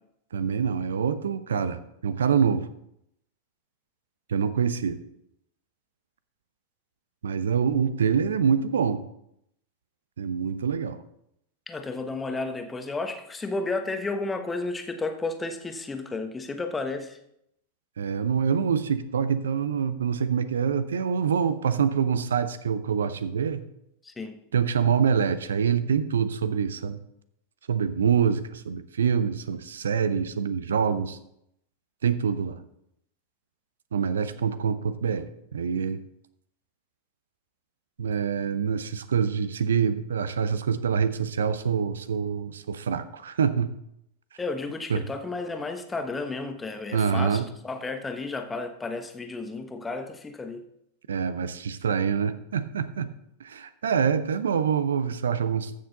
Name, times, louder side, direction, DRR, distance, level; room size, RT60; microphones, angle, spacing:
voice 1, 0.3-2.7 4.3-5.0 7.2-9.0 10.2-11.0 18.0-23.7 24.5-27.0 27.7-31.2 32.0-32.6 33.9-36.0 38.0-43.7 44.9-45.0 46.9-47.4 51.1-53.1 53.4-55.8, right 7 dB, 65° right, 14 dB, 0.7 m, -25 dB
voice 2, 11.7-17.2 24.0-24.4 44.4-50.7, left 3 dB, 15° left, 7 dB, 1.2 m, -32 dB
14.5 x 6.7 x 4.0 m, 0.77 s
figure-of-eight pair, 90°, 0 cm